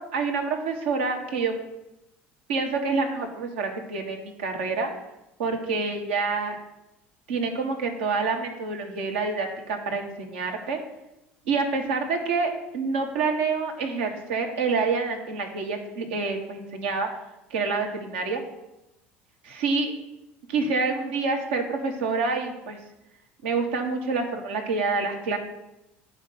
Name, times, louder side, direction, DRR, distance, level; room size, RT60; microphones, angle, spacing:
voice 1, 0.0-1.6 2.5-4.9 5.4-6.6 7.3-10.8 11.4-17.1 17.5-18.4 19.4-19.9 20.5-22.8 23.4-25.4, right 4 dB, 65° right, 3 dB, 1.4 m, -27 dB
8.7 x 5.0 x 5.9 m, 0.91 s
figure-of-eight pair, 65°, 6 cm